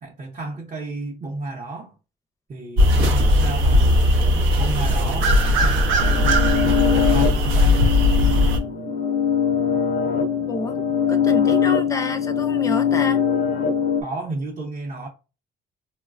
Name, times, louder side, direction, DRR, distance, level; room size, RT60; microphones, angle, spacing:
voice 1, 0.0-2.0 2.5-4.1 4.3-7.8 14.0-15.1, right 2 dB, 40° right, 0.7 m, -32 dB
sound 1, 2.8-8.6, left 1 dB, 85° right, 0.6 m, -18 dB
sound 2, 6.0-14.0, left 7 dB, 90° left, 0.6 m, -22 dB
voice 2, 11.1-13.3, left 2 dB, 15° left, 0.5 m, -28 dB
3.8 x 2.1 x 2.4 m
cardioid pair, 90°, 20 cm